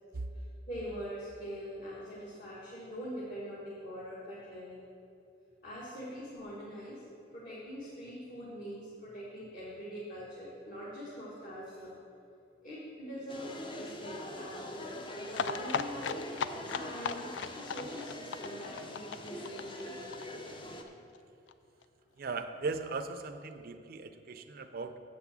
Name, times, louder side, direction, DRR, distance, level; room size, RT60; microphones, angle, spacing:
voice 1, 0.3-4.8 5.6-7.0 7.3-11.9 12.6-16.1 16.7-17.3 17.5-20.2, equal, 50° left, -7 dB, 1.7 m, -43 dB
sound 1, 13.3-20.8, left 1 dB, 25° left, 0.6 m, -43 dB
sound 2, 15.3-20.9 21.1-21.2 21.5-21.6 21.8-21.9, left 6 dB, 75° left, 0.4 m, -37 dB
voice 2, 22.2-25.0, right 3 dB, 55° right, 8 dB, 0.5 m, -38 dB
7.7 x 6.0 x 7.1 m, 2.7 s
head